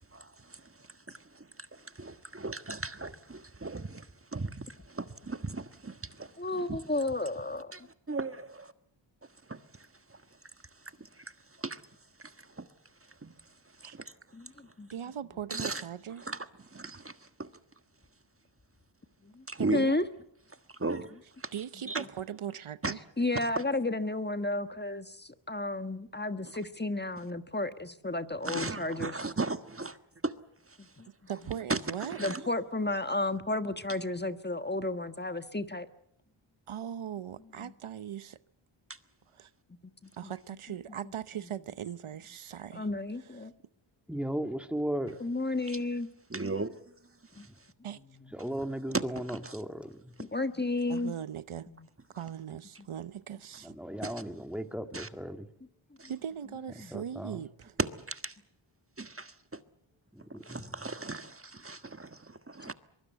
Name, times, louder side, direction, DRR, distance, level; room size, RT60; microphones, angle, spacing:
voice 1, 0.1-6.3 6.7-6.8 7.7-7.8 8.1-8.7 9.5-10.2 11.0-11.3 11.6-11.8 12.2-12.7 13.2-13.3 13.8-14.1 15.5-15.8 16.2-17.5 19.5-19.8 20.7-21.5 21.9-22.0 22.8-22.9 28.4-30.0 30.2-30.3 30.7-30.9 31.7-32.4 46.3-46.8 47.3-47.5 48.9-49.0 49.4-49.5 54.0-54.2 54.9-55.1 56.0-56.1 57.8-58.4 59.0-59.6 60.4-62.7, right 3 dB, 25° right, 1.5 m, -37 dB
voice 2, 6.4-7.7 14.3-14.9 19.2-19.4 19.7-20.0 23.2-29.2 31.0-31.1 32.2-35.9 37.6-37.7 40.2-40.3 42.7-43.5 45.2-46.1 47.4-47.5 50.2-51.1 51.7-51.8 56.8-56.9, left 2 dB, 20° left, 1.4 m, -32 dB
voice 3, 14.9-16.3 19.6-20.0 21.5-23.0 31.3-32.2 36.7-38.4 39.3-39.5 40.2-42.9 47.8-48.0 50.9-51.7 52.2-53.8 56.1-57.7, right 9 dB, 80° right, 0.9 m, -39 dB
voice 4, 44.1-45.2 47.4-47.6 48.3-50.1 53.6-55.5 56.9-57.4 60.1-60.9, equal, ahead, 2.0 m, -36 dB
23.0 x 23.0 x 8.1 m
cardioid pair, 60°, 49 cm